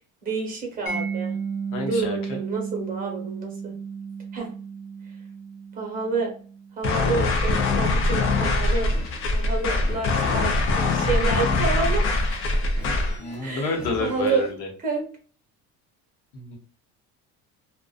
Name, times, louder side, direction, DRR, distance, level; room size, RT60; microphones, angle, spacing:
voice 1, 0.2-1.3 1.8-3.7 4.3-4.5 5.7-6.3 6.8-8.9 9.3-12.6 13.4-13.7 14.0-14.5 14.8-15.1, right 4 dB, 25° right, 1 dB, 1.0 m, -29 dB
Mallet percussion, 0.9-7.6, right 5 dB, 60° left, 1.0 m, -34 dB
voice 2, 1.7-2.4 12.8-14.7 16.3-16.6, left 3 dB, 85° left, 1 dB, 0.9 m, -30 dB
sound 1, 6.8-13.2, left 2 dB, 45° left, 0.5 m, -23 dB
sound 2, 8.2-14.5, left 2 dB, 10° left, 0.8 m, -42 dB
2.4 x 2.2 x 2.3 m, 0.41 s
cardioid pair, 155°, 31 cm